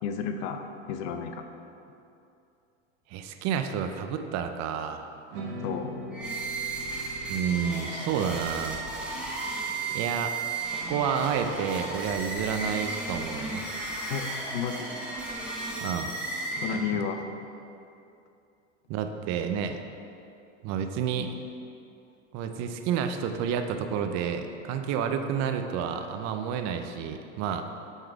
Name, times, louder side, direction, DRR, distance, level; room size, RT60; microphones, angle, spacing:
voice 1, 0.0-1.4 5.6-5.9 14.1-15.2 16.6-17.2 21.2-21.3, left 7 dB, 65° left, 6 dB, 0.7 m, -32 dB
voice 2, 3.1-5.0 7.3-8.8 9.9-10.3 10.7-13.6 15.8-16.1 16.7-16.8 18.9-19.8 20.6-21.3 22.3-27.6, right 7 dB, 50° right, 7 dB, 0.6 m, -30 dB
sound 1, 5.3-11.6, equal, 75° right, 1.2 m, -43 dB
sound 2, 6.1-17.2, right 3 dB, 5° right, 1.5 m, -34 dB
8.0 x 3.8 x 4.7 m, 2.7 s
hypercardioid pair, 95°, 36 cm